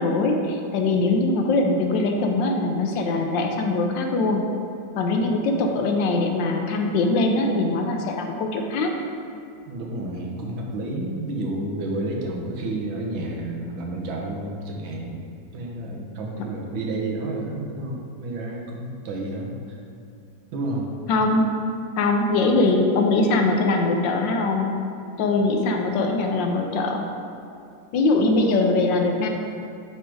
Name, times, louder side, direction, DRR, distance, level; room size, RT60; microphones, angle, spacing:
voice 1, 0.0-4.4 5.0-8.9 21.1-21.5 22.0-24.7 25.2-27.0 27.9-29.3, left 2 dB, 75° left, 3 dB, 1.3 m, -22 dB
voice 2, 9.7-15.2 15.5-19.8 20.5-20.9, right 2 dB, 85° right, -1 dB, 1.7 m, -30 dB
8.9 x 3.4 x 4.6 m, 2.5 s
omnidirectional pair, 2.1 m